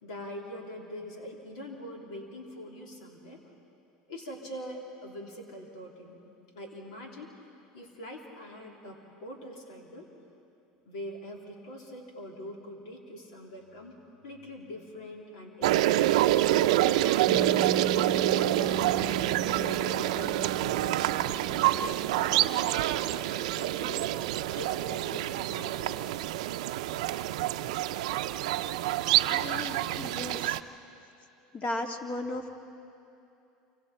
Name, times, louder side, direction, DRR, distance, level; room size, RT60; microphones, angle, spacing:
voice 1, 0.0-3.4 4.1-6.2 6.5-7.3 7.7-10.1 10.9-14.0 14.2-16.4 17.0-18.9 19.4-22.6 23.0-24.0 24.5-26.0 30.6-30.7, left 1 dB, 90° left, 0 dB, 3.5 m, -43 dB
sound 1, 15.6-30.6, right 14 dB, 85° right, 0.5 m, -27 dB
Piano, 17.3-24.6, right 1 dB, 15° right, 0.9 m, -41 dB
voice 2, 29.3-30.6 31.5-32.5, left 2 dB, 40° left, 4 dB, 2.1 m, -35 dB
28.0 x 25.5 x 4.4 m, 2.7 s
supercardioid pair, 110°, 3 cm